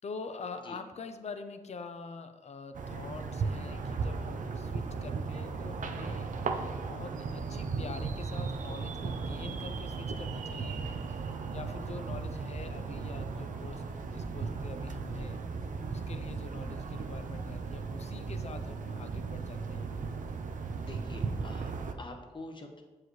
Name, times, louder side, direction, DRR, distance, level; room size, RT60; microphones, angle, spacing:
voice 1, 0.0-6.3 6.8-10.9 11.5-15.4 15.9-19.9 20.8-21.0, left 4 dB, 55° left, 9 dB, 0.5 m, -45 dB
sound 1, 2.7-21.9, right 4 dB, 75° right, 0.6 m, -36 dB
voice 2, 20.8-21.7 22.0-22.8, left 2 dB, 35° left, 3 dB, 0.9 m, -45 dB
7.8 x 4.7 x 3.1 m, 1.3 s
cardioid pair, 80°, 13 cm